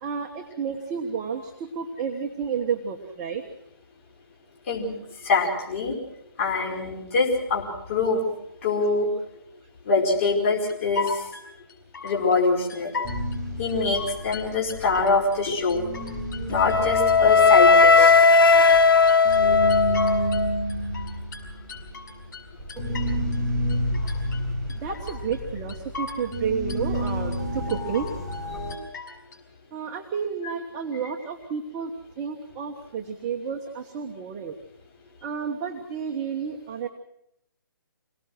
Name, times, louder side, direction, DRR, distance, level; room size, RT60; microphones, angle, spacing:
voice 1, 0.0-3.4 24.7-28.1 29.7-34.5 35.2-36.9, right 6 dB, 20° right, 2 dB, 1.2 m, -31 dB
voice 2, 4.7-5.0 5.2-6.0 6.4-7.6 7.9-8.2 8.6-9.1 9.8-11.2 12.0-13.0 13.6-15.9 16.5-18.2 23.9-24.0, left 3 dB, 35° left, -3 dB, 5.1 m, -24 dB
sound 1, 10.7-12.4 12.7-13.4 13.7-15.4 15.7-16.4 16.7-18.4 18.7-20.4 20.7-23.4 23.7-24.4 24.7-25.4 25.7-26.4 26.7-27.4 27.7-28.4 28.7-29.4, left 4 dB, 55° left, 5.8 m, -37 dB
sound 2, 13.0-15.4 15.7-28.7, equal, ahead, 4.6 m, -30 dB
Wind instrument woodwind instrument, 16.6-20.6, left 4 dB, 75° left, 1.4 m, -17 dB
27.0 x 18.0 x 6.3 m, 0.79 s
hypercardioid pair, 165°, 12 cm